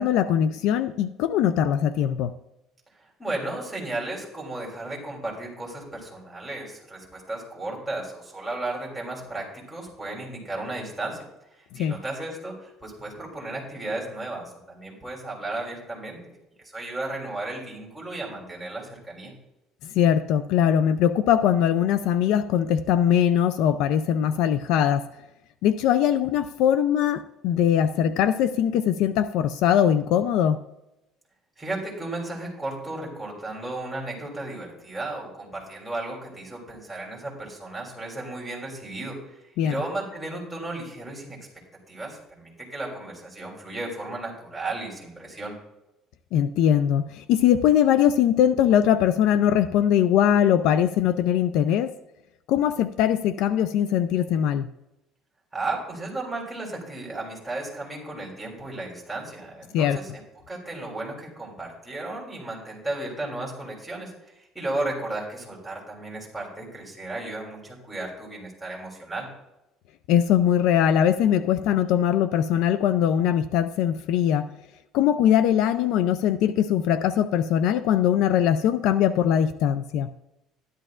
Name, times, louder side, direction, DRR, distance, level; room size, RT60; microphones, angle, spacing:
voice 1, 0.0-2.3 11.7-11.9 19.8-25.0 25.6-30.6 39.6-39.8 46.3-51.9 52.5-54.7 59.7-60.0 70.1-74.5 74.9-80.1, left 9 dB, 65° left, 12 dB, 0.4 m, -21 dB
voice 2, 3.0-11.2 11.5-16.2 16.7-19.3 31.6-41.5 41.9-45.5 55.5-60.2 60.5-69.3, right 2 dB, 5° right, -3 dB, 3.2 m, -34 dB
13.0 x 11.0 x 2.5 m, 0.90 s
cardioid pair, 160°, 0 cm